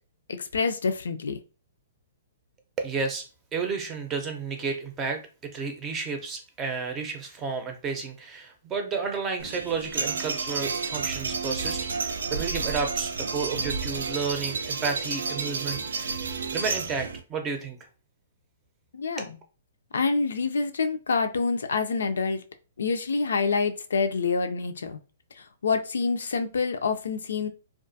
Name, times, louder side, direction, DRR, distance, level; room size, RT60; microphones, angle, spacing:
voice 1, 0.3-1.4 18.9-19.4 19.9-22.4 22.8-25.0 25.4-27.5, left 4 dB, 85° left, 8 dB, 0.4 m, -27 dB
voice 2, 2.8-3.2 3.5-5.2 5.5-16.1 16.5-17.8 19.2-19.3, right 5 dB, 20° right, 4 dB, 0.6 m, -32 dB
sound 1, 9.4-17.2, right 4 dB, 85° right, 0.4 m, -31 dB
2.4 x 2.3 x 2.6 m, 0.34 s
hypercardioid pair, 150°, 0 cm